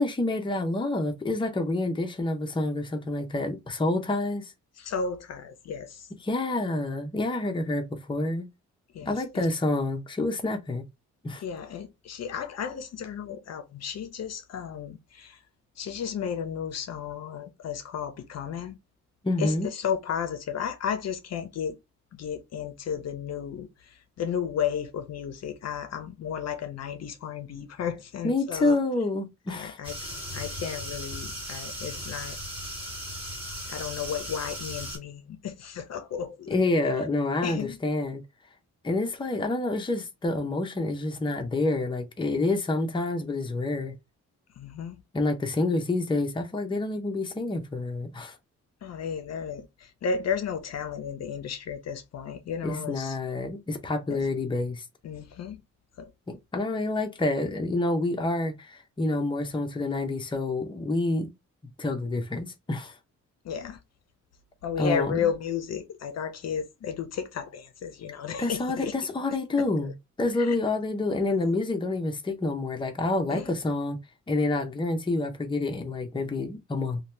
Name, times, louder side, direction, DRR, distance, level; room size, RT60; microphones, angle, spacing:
voice 1, 0.0-4.5 6.2-8.5 9.0-10.8 11.2-11.4 19.2-19.7 28.2-29.8 36.5-38.2 38.8-43.9 45.1-48.4 52.6-54.9 56.3-61.3 61.8-62.9 64.8-65.3 68.4-69.9 70.2-74.0 74.3-77.0, left 2 dB, 15° left, 0.6 m, -28 dB
voice 2, 4.8-6.1 8.9-9.5 11.4-15.4 15.8-18.8 19.4-21.8 22.1-28.8 29.5-32.4 33.7-36.6 37.4-37.8 44.6-45.0 48.8-53.2 54.1-54.3 55.0-55.6 56.0-56.1 63.4-63.8 64.6-68.9 69.6-69.7 70.3-70.6 71.4-71.5 73.3-73.6, left 7 dB, 60° left, 0.6 m, -33 dB
sound 1, 29.8-35.0, equal, 15° right, 1.5 m, -37 dB
2.7 x 2.2 x 3.1 m
cardioid pair, 120°, 30 cm